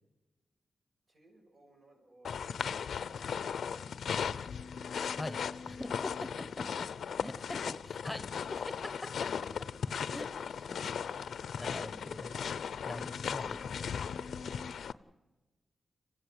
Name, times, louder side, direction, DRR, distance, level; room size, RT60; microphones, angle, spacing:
voice 1, 1.1-4.3 6.4-6.8 14.4-14.8, right 1 dB, 50° right, 1 dB, 6.6 m, -64 dB
sound 1, 2.2-14.9, left 7 dB, 80° left, 0.6 m, -37 dB
voice 2, 5.7-6.3 7.2-8.9 10.1-10.3 10.7-10.8 11.6-12.4 12.8-13.9, left 2 dB, 20° left, 11 dB, 1.2 m, -42 dB
28.5 x 15.5 x 8.1 m, 1.2 s
wide cardioid pair, 100°, 0 cm